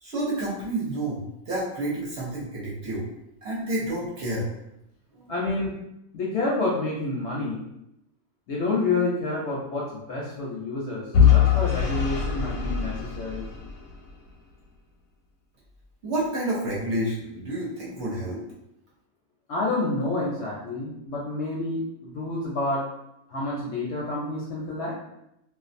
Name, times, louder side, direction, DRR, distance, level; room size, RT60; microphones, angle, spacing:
voice 1, 0.0-3.0 3.4-4.5 5.2-5.3 16.0-18.4, right 1 dB, 60° right, -6 dB, 0.9 m, -29 dB
voice 2, 5.3-5.8 6.1-7.6 8.5-13.5 19.5-22.8 23.3-25.0, left 2 dB, 65° left, -4 dB, 0.7 m, -28 dB
Vehicle / Engine, 11.1-14.1, left 8 dB, 85° left, 1.1 m, -22 dB
2.5 x 2.3 x 2.5 m, 0.83 s
omnidirectional pair, 1.5 m